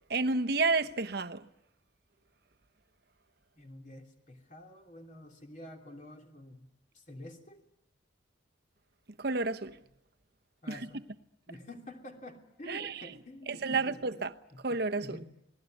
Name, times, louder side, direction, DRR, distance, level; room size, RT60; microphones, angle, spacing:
voice 1, 0.1-1.5 9.2-9.8 10.7-10.9 12.7-13.1 13.5-14.3 14.6-15.2, right 3 dB, 55° right, 1.0 m, -30 dB
voice 2, 3.6-6.7 6.9-7.6 10.6-11.0 11.5-14.6 15.0-15.3, left 1 dB, 40° left, 3.0 m, -48 dB
28.5 x 19.5 x 9.2 m
head